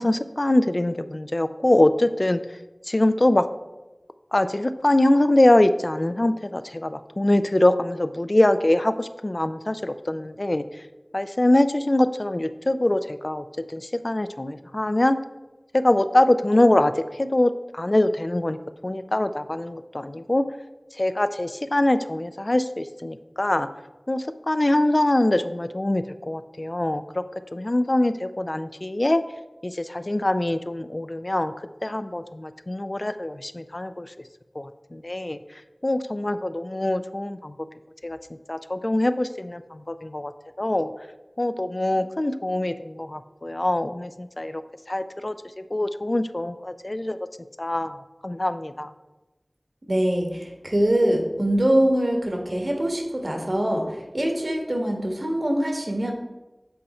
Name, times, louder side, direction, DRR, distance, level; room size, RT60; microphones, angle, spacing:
voice 1, 0.0-2.4 2.9-3.5 4.3-10.6 11.1-15.2 15.7-18.6 18.8-20.5 21.0-23.7 24.1-27.2 27.5-29.2 29.6-31.5 31.8-34.1 34.6-35.4 35.8-37.5 38.0-38.2 38.5-40.3 40.6-40.9 41.4-44.6 44.9-45.4 45.7-47.2 47.6-48.0 48.2-48.9, left 1 dB, 50° left, 10 dB, 0.3 m, -23 dB
voice 2, 49.9-56.1, right 1 dB, 55° right, 1 dB, 1.3 m, -23 dB
7.8 x 4.2 x 4.2 m, 1.1 s
wide cardioid pair, 40°, 0 cm